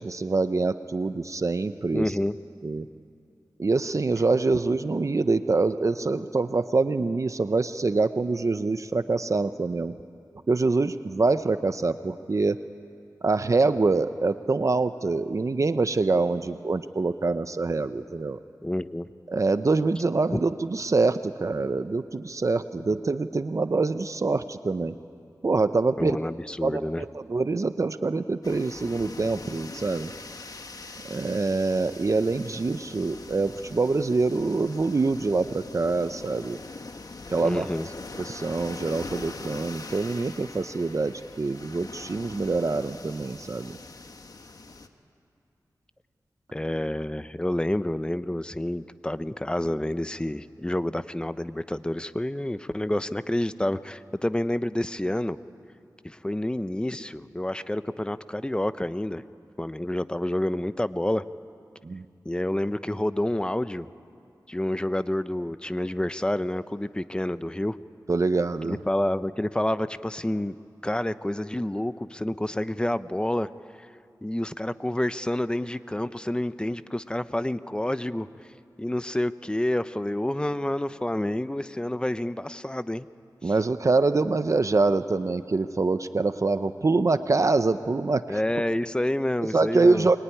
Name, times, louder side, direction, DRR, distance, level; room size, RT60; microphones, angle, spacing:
voice 1, 0.0-2.1 2.6-2.9 3.6-9.9 10.5-12.6 13.2-18.4 19.3-25.0 25.4-26.2 26.6-30.1 31.0-36.6 37.3-37.7 38.2-43.8 61.8-62.0 68.1-68.8 83.4-88.4 89.5-90.2, right 3 dB, 45° right, 11 dB, 0.7 m, -25 dB
voice 2, 1.9-2.4 18.6-19.1 20.3-20.4 26.0-27.0 37.4-37.9 46.5-55.4 56.0-59.2 59.6-61.2 62.2-63.9 64.5-67.8 68.7-70.6 70.8-73.5 74.2-78.3 78.8-83.1 83.4-83.5 88.3-90.1, left 1 dB, 10° left, 13 dB, 0.7 m, -28 dB
sound 1, 28.4-44.9, left 3 dB, 60° left, 1.4 m, -42 dB
23.0 x 22.5 x 9.9 m, 2.4 s
wide cardioid pair, 85°, 7 cm